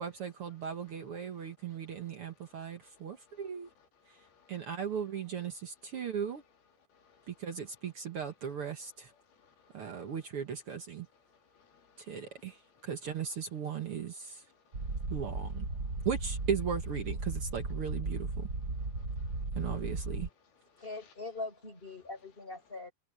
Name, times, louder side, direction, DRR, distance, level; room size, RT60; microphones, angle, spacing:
voice 1, 0.0-3.7 4.5-6.4 7.3-9.1 9.7-11.1 12.0-14.4 15.1-15.7 16.0-18.5 19.5-20.3, right 7 dB, 65° right, 1.3 m, -37 dB
voice 2, 4.2-4.5 6.9-7.4 9.4-10.1 11.5-12.2 12.5-12.6 14.7-15.1 18.8-19.4 20.8-20.9, left 6 dB, 70° left, 4.7 m, -65 dB
sound 1, 14.7-20.3, right 2 dB, 30° right, 2.0 m, -36 dB
voice 3, 20.8-22.9, left 3 dB, 15° left, 5.9 m, -42 dB
omnidirectional pair, 4.5 m